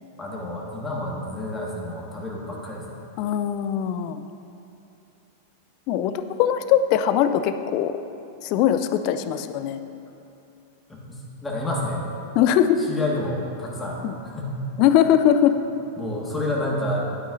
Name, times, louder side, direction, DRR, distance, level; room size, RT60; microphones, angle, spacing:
voice 1, 0.2-3.0 10.9-12.0 12.8-14.6 16.0-17.1, left 1 dB, 10° left, -3 dB, 1.8 m, -29 dB
voice 2, 3.2-4.2 5.9-6.1 6.4-7.9 8.4-9.8 12.4-12.8 14.0-14.1 14.8-15.5, left 10 dB, 50° left, 10 dB, 0.4 m, -20 dB
11.0 x 9.0 x 2.7 m, 2.7 s
figure-of-eight pair, 95°, 0 cm